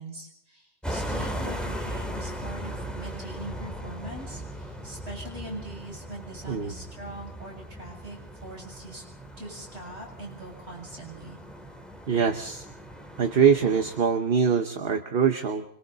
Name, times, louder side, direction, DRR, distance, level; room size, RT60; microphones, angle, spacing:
voice 1, 0.0-9.0 9.4-11.4, right 1 dB, 80° right, -1 dB, 8.1 m, -42 dB
sound 1, 0.8-14.0, equal, ahead, 3.2 m, -38 dB
voice 2, 12.1-12.6 13.2-15.6, right 7 dB, 60° right, 7 dB, 1.2 m, -23 dB
25.5 x 25.5 x 4.1 m, 0.71 s
omnidirectional pair, 1.1 m